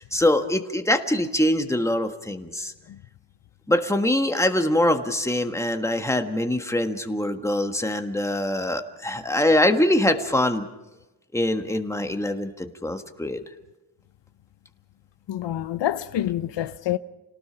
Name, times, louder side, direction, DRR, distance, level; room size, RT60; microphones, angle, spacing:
voice 1, 0.0-2.7 3.7-10.7 11.3-13.4, left 1 dB, 5° left, 1.5 m, -23 dB
voice 2, 15.3-17.0, left 12 dB, 85° left, 0.8 m, -27 dB
29.5 x 18.5 x 5.8 m
wide cardioid pair, 125°, 42 cm